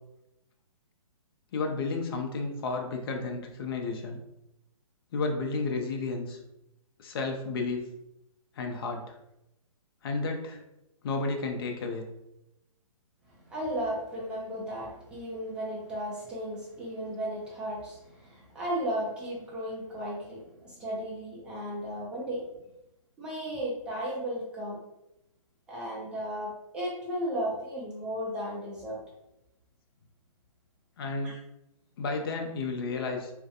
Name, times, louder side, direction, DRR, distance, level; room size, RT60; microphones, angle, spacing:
voice 1, 1.5-4.2 5.1-6.4 7.0-7.8 8.6-9.2 10.0-10.6 11.0-12.1 31.0-31.4 32.0-33.3, left 3 dB, 40° left, 3 dB, 0.5 m, -32 dB
voice 2, 13.3-22.5 23.2-24.8 25.7-29.0 31.2-31.4, equal, 5° right, -6 dB, 0.5 m, -35 dB
2.4 x 2.1 x 2.7 m, 0.89 s
hypercardioid pair, 150°, 18 cm